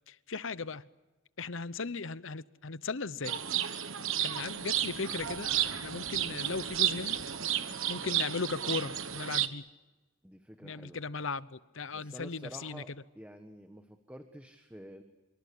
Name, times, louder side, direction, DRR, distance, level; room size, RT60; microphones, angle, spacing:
voice 1, 0.1-0.8 1.4-3.3 4.2-7.2 7.9-9.6 10.6-12.8, left 4 dB, 60° left, 0.9 m, -37 dB
sound 1, 3.2-9.5, right 10 dB, 65° right, 1.3 m, -32 dB
sound 2, 4.3-9.5, equal, 10° left, 3.4 m, -56 dB
voice 2, 10.2-11.0 11.9-12.9 13.1-15.0, equal, 5° right, 1.4 m, -49 dB
26.0 x 24.5 x 8.5 m
head